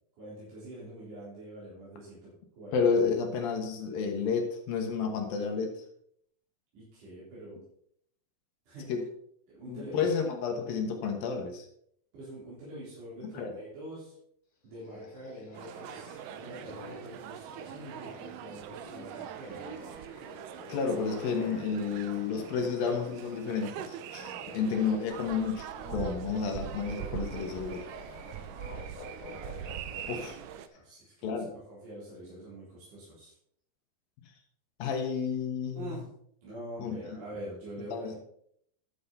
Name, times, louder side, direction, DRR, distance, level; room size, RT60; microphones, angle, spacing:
voice 1, 0.2-2.8 6.7-7.6 8.7-8.9 9.5-10.1 12.1-14.2 14.6-19.8 24.5-24.9 30.7-33.3 35.8-36.1 36.4-38.2, right 1 dB, 55° right, -9 dB, 5.2 m, -45 dB
voice 2, 2.7-5.8 8.9-9.0 9.7-11.7 13.2-13.5 20.7-27.9 30.1-30.4 31.2-31.5 34.8-36.0 36.8-37.2 37.9-38.1, left 5 dB, 70° left, 3 dB, 3.0 m, -31 dB
sound 1, 14.7-23.4 23.7-30.5, left 3 dB, 40° left, 2.8 m, -48 dB
sound 2, 15.5-30.7, right 10 dB, 85° right, 1.9 m, -42 dB
12.0 x 7.4 x 4.2 m, 0.69 s
omnidirectional pair, 4.4 m